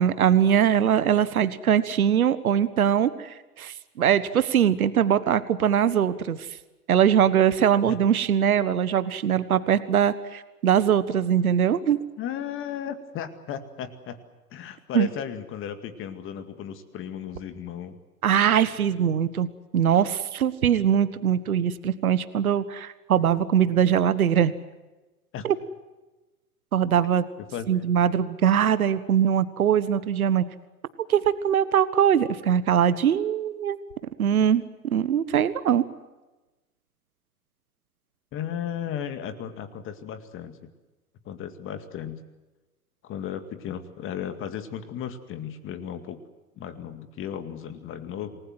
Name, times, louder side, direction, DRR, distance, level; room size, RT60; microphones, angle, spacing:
voice 1, 0.0-6.4 6.9-12.0 14.9-15.1 18.2-19.5 19.7-24.5 25.4-25.6 26.7-27.2 27.7-30.4 31.1-33.8 34.2-35.8, right 9 dB, 65° right, 15 dB, 1.4 m, -22 dB
voice 2, 12.2-14.2 14.5-18.0 25.3-25.5 27.5-27.7 38.3-40.6 41.3-42.2 43.0-46.2 46.6-48.4, left 9 dB, 25° left, 10 dB, 2.2 m, -35 dB
28.0 x 20.0 x 7.8 m, 1.1 s
figure-of-eight pair, 100°, 45 cm